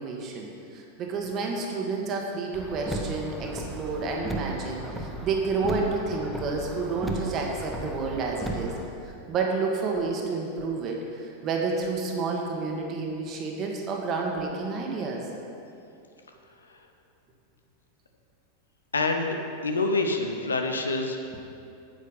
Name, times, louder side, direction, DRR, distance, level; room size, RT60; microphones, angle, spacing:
voice 1, 0.0-8.7 9.0-15.2, right 4 dB, 35° right, 0 dB, 1.6 m, -30 dB
Car, 2.5-8.9, right 2 dB, 5° right, 0.9 m, -35 dB
voice 2, 18.9-19.3 19.6-21.4, left 3 dB, 75° left, 4 dB, 0.8 m, -26 dB
8.8 x 8.3 x 5.6 m, 2.6 s
figure-of-eight pair, 90°, 0 cm